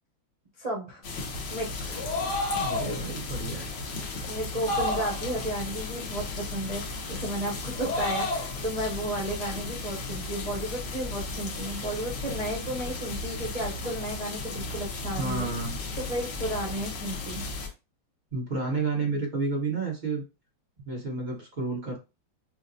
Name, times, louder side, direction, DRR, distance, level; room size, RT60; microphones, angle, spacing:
voice 1, 0.6-1.0 1.5-2.1 4.3-15.5 16.0-17.4 19.0-19.2, right 1 dB, 60° right, -4 dB, 0.3 m, -33 dB
sound 1, 1.0-17.7, left 3 dB, 85° left, 1.7 m, -35 dB
sound 2, 1.9-3.0 4.7-5.4 7.7-8.5, left 2 dB, 60° left, 1.5 m, -30 dB
voice 2, 2.5-4.1 15.2-15.8 18.3-20.2 20.8-22.0, right 3 dB, 30° right, -1 dB, 1.1 m, -31 dB
6.0 x 2.2 x 2.7 m, 0.27 s
omnidirectional pair, 2.1 m